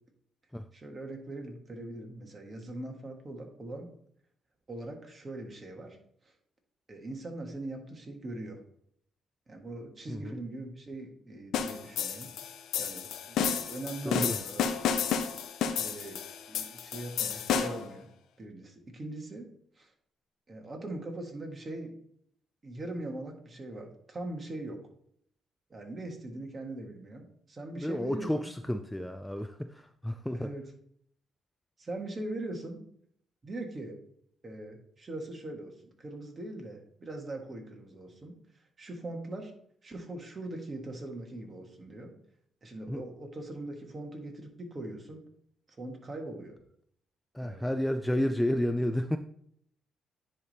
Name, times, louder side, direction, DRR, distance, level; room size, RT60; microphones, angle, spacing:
voice 1, 0.7-3.9 4.7-6.0 6.9-8.6 9.5-12.3 12.8-14.7 15.8-18.1 18.4-19.5 19.8-19.9 20.5-21.9 22.6-24.8 25.7-28.5 30.3-30.6 31.8-32.8 33.4-34.0 34.4-35.7 36.0-38.3 38.8-39.5 39.8-42.1 42.6-45.2 45.7-46.5 47.4-47.6, right 2 dB, 30° right, 2 dB, 1.6 m, -41 dB
voice 2, 10.1-10.4 14.1-14.4 27.7-30.5 42.9-43.0 47.3-49.2, left 1 dB, 5° left, 8 dB, 0.4 m, -31 dB
sound 1, 11.5-17.9, left 7 dB, 80° left, 0.7 m, -31 dB
9.9 x 3.4 x 4.1 m, 0.66 s
cardioid pair, 90°, 0 cm